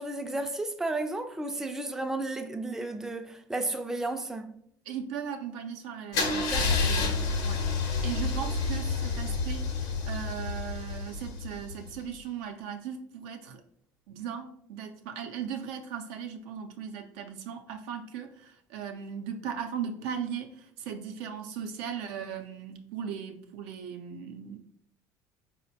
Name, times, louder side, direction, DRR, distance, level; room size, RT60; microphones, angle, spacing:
voice 1, 0.0-4.5 6.5-6.8, right 2 dB, 5° right, 0.3 m, -33 dB
voice 2, 4.9-7.1 7.4-7.6 8.0-13.6 14.1-24.6, right 8 dB, 75° right, 0.4 m, -38 dB
Car / Engine starting / Idling, 6.1-12.0, left 3 dB, 75° left, 0.7 m, -29 dB
4.1 x 2.1 x 2.7 m
hypercardioid pair, 75°, 10 cm